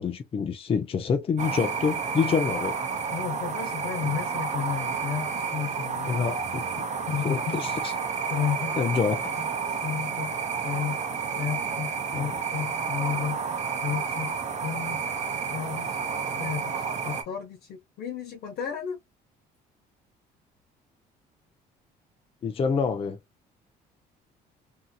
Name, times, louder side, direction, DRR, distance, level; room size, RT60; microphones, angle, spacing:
voice 1, 0.0-2.8 6.0-6.9 7.2-7.9 8.8-9.3 12.1-12.7 22.4-23.2, left 6 dB, 35° left, 0.5 m, -27 dB
sound 1, 1.4-17.2, right 6 dB, 45° right, 0.8 m, -30 dB
voice 2, 3.1-6.2 7.1-7.7 8.3-9.1 9.4-9.5 9.8-10.3 10.6-11.0 11.4-13.4 13.8-14.3 14.6-15.0 15.5-15.9 16.4-16.7 17.0-19.0, left 9 dB, 70° left, 0.8 m, -32 dB
2.8 x 2.6 x 2.3 m
cardioid pair, 110°, 17 cm